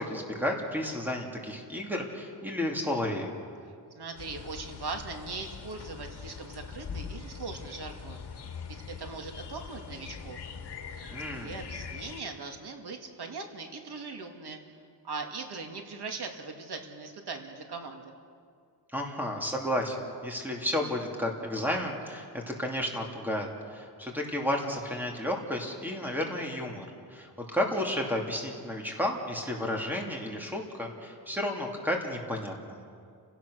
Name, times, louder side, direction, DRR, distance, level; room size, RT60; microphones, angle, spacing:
voice 1, 0.0-3.3 11.1-11.5 18.9-32.8, left 1 dB, 5° right, 0 dB, 2.8 m, -32 dB
voice 2, 3.9-8.2 8.7-10.4 11.4-14.6 15.0-18.2, right 4 dB, 65° right, 3 dB, 2.4 m, -40 dB
sound 1, 4.2-12.2, left 6 dB, 70° left, 2.0 m, -42 dB
29.5 x 17.0 x 6.5 m, 2.3 s
wide cardioid pair, 155°, 42 cm